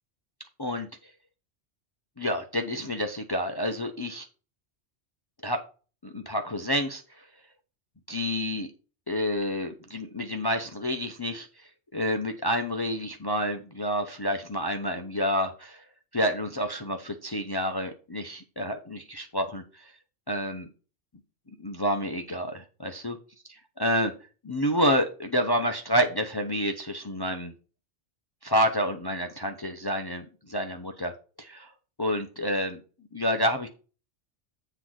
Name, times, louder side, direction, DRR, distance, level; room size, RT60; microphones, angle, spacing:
voice 1, 2.2-4.3 5.4-5.6 6.0-7.0 8.1-8.7 9.1-11.5 11.9-15.8 16.1-19.6 20.3-20.7 21.6-23.2 23.8-24.1 24.4-27.5 28.4-31.1 31.4-31.7 32.0-32.8 33.1-33.7, equal, 25° left, 5 dB, 0.6 m, -28 dB
7.9 x 3.9 x 6.2 m, 0.35 s
omnidirectional pair, 1.2 m